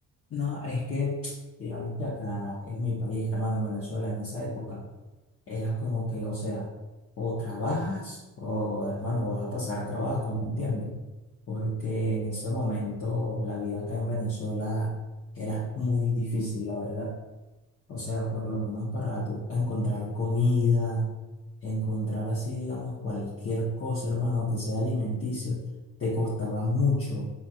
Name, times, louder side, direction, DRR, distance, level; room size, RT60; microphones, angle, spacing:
voice 1, 0.3-1.3 1.6-4.8 5.5-6.7 7.2-10.9 11.5-14.9 15.3-17.1 17.9-21.2 21.6-25.6 26.0-27.3, left 1 dB, 45° left, -7 dB, 0.9 m, -29 dB
4.3 x 3.3 x 2.3 m, 1.1 s
cardioid pair, 90°, 30 cm